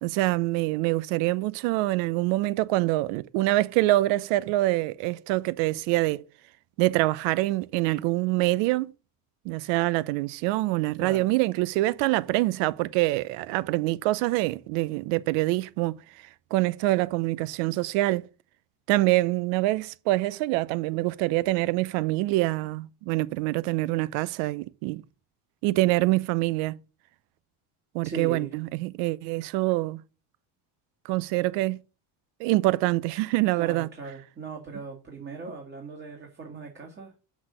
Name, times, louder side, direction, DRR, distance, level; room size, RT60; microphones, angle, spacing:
voice 1, 0.0-6.2 6.8-8.9 9.4-15.9 16.5-18.3 18.9-25.0 25.6-26.8 27.9-30.0 31.0-31.8 32.4-33.9, right 18 dB, 90° right, 0.7 m, -25 dB
voice 2, 11.0-11.3 28.0-28.5 33.5-37.1, right 4 dB, 25° right, 1.7 m, -39 dB
6.2 x 6.1 x 6.2 m
cardioid pair, 140°, 43 cm